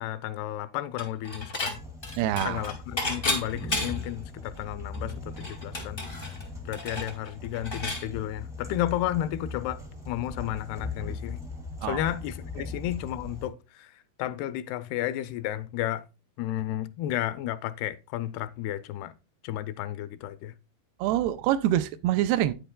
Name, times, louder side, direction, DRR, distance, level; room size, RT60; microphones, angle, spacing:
voice 1, 0.0-1.8 2.4-6.0 6.6-9.8 10.1-11.4 11.8-16.1 16.4-19.1 19.4-20.5, left 13 dB, 85° left, 2.4 m, -32 dB
Dishes pots and pans / Chink clink, 1.0-1.7 2.0-4.1 4.6-4.7 4.9-8.0, left 2 dB, 60° left, 0.5 m, -32 dB
sound 1, 1.7-13.5, left 3 dB, 5° right, 0.4 m, -40 dB
voice 2, 2.2-2.7 11.8-12.1 12.6-12.7 21.0-22.5, right 12 dB, 85° right, 2.4 m, -26 dB
10.0 x 9.1 x 2.2 m
omnidirectional pair, 4.6 m